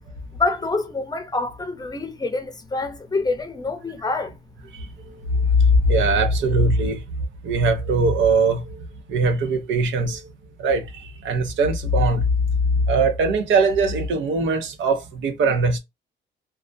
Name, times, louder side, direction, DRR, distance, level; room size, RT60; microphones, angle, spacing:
voice 1, 0.4-4.3, left 3 dB, 20° left, 0.6 m, -26 dB
voice 2, 5.6-7.0 7.4-8.8 9.1-10.3 10.6-12.3 12.7-15.8, right 2 dB, 75° right, 0.6 m, -20 dB
2.3 x 2.1 x 2.5 m
cardioid pair, 90°, 20 cm